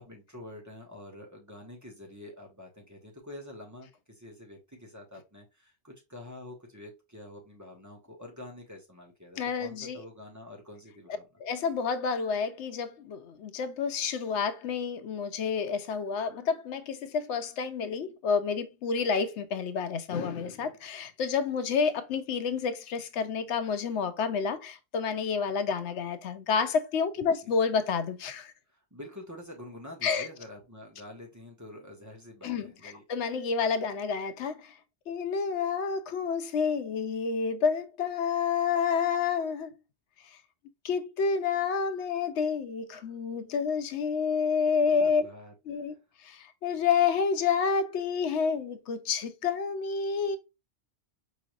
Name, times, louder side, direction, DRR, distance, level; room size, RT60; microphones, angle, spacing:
voice 1, 0.0-11.4 27.4-27.5 28.7-33.0 44.9-46.0, left 1 dB, 15° right, 1.1 m, -47 dB
voice 2, 9.4-10.0 11.4-28.5 30.0-30.3 32.4-34.8 35.1-39.7 40.8-45.3 45.7-45.9 46.2-50.4, left 6 dB, 90° left, 0.9 m, -29 dB
4.8 x 3.1 x 2.4 m
omnidirectional pair, 1.1 m